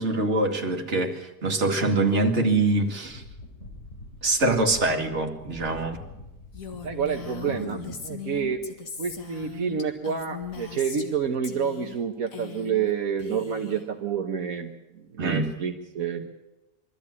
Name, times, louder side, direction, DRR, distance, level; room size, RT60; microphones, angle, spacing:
voice 1, 0.0-3.2 4.2-6.0 7.5-7.8 15.2-15.5, right 2 dB, 55° right, 2 dB, 2.6 m, -24 dB
sound 1, 3.0-11.6 11.8-12.0, left 2 dB, 55° left, 4.4 m, -46 dB
Female speech woman speaking, 6.5-11.2 11.4-12.0 12.3-12.9 13.2-13.8, left 7 dB, 75° left, 2.3 m, -39 dB
voice 2, 6.8-8.6 9.0-16.3, right 7 dB, 80° right, 3 dB, 1.6 m, -29 dB
23.5 x 14.0 x 9.8 m, 0.99 s
omnidirectional pair, 1.5 m